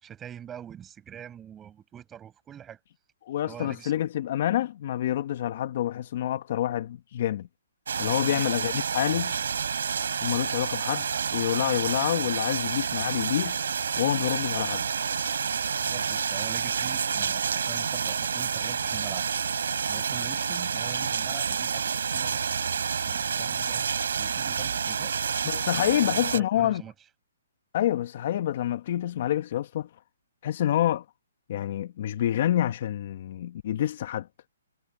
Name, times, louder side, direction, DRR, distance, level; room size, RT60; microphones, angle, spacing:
voice 1, 0.0-2.8 3.5-3.9 8.1-8.4 15.8-19.3 19.9-22.6 23.0-23.8 24.2-25.1 26.0-26.9, right 9 dB, 15° right, 5.0 m, -44 dB
voice 2, 3.3-7.5 8.0-9.3 10.2-13.6 14.0-14.8 25.4-26.8 27.7-29.9 30.4-31.0 31.5-34.3, left 12 dB, 45° left, 1.1 m, -27 dB
sound 1, 7.9-26.4, right 6 dB, 75° right, 3.4 m, -29 dB
hypercardioid pair, 155°, 0 cm